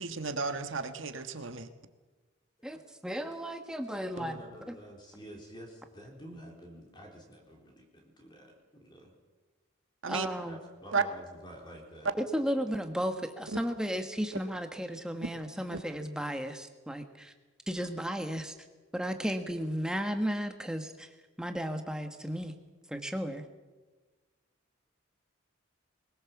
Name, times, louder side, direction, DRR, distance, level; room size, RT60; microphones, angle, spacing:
voice 1, 0.0-1.7 10.0-10.3 10.9-11.0 13.5-13.6, right 5 dB, 75° right, 8 dB, 1.5 m, -33 dB
voice 2, 2.6-4.3 4.7-4.8 10.1-10.6 12.2-17.3 17.7-18.5 18.9-21.1 21.4-22.5 22.9-23.4, equal, 5° right, 6 dB, 1.4 m, -34 dB
voice 3, 4.2-9.1 10.5-12.1, equal, 20° left, 1 dB, 3.6 m, -49 dB
21.5 x 19.5 x 7.2 m, 1.2 s
head